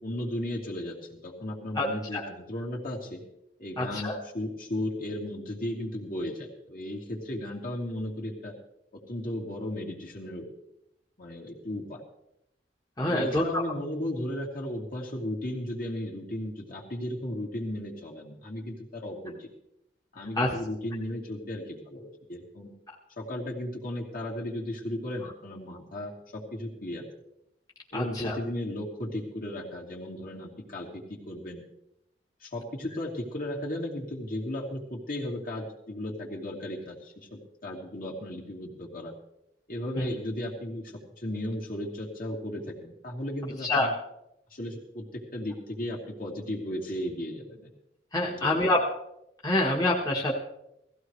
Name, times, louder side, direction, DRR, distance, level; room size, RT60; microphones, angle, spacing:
voice 1, 0.0-3.2 3.6-8.6 8.9-10.5 11.2-12.0 13.1-19.5 20.1-22.7 23.2-27.1 27.9-31.6 32.4-39.1 39.7-43.9 44.5-47.7 48.2-48.7, left 1 dB, 55° left, -2 dB, 2.7 m, -35 dB
voice 2, 3.8-4.2 13.0-13.6 20.4-20.5 27.9-28.4 40.0-40.1 43.6-43.9 48.1-48.8 49.4-50.3, left 1 dB, 20° left, -3 dB, 1.4 m, -26 dB
17.5 x 15.5 x 3.2 m, 0.83 s
head